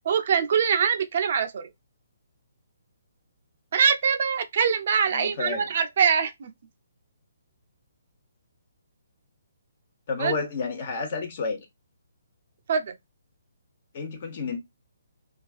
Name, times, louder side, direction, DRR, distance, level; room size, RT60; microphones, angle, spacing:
voice 1, 0.0-1.7 3.7-6.5 10.2-10.3 12.7-13.0, right 6 dB, 55° right, 0.4 m, -23 dB
voice 2, 5.1-5.7 10.1-11.7 13.9-14.6, left 4 dB, 45° left, 0.9 m, -30 dB
2.4 x 2.3 x 2.3 m
hypercardioid pair, 145°, 0 cm